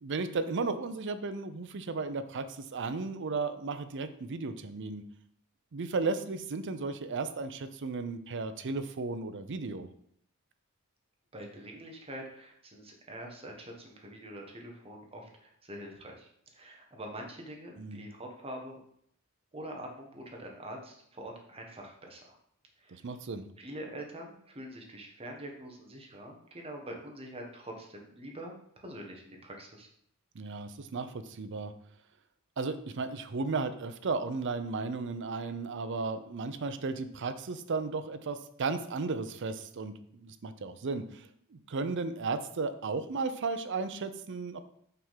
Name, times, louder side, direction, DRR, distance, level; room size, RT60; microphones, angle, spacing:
voice 1, 0.0-5.0 5.7-9.9 17.8-18.1 22.9-23.4 30.3-31.7 32.6-44.6, right 4 dB, 55° right, 11 dB, 0.5 m, -35 dB
voice 2, 11.3-18.8 19.5-22.4 22.8-23.0 23.6-29.9, right 1 dB, 25° right, 1 dB, 1.2 m, -45 dB
5.7 x 3.6 x 5.7 m, 0.67 s
head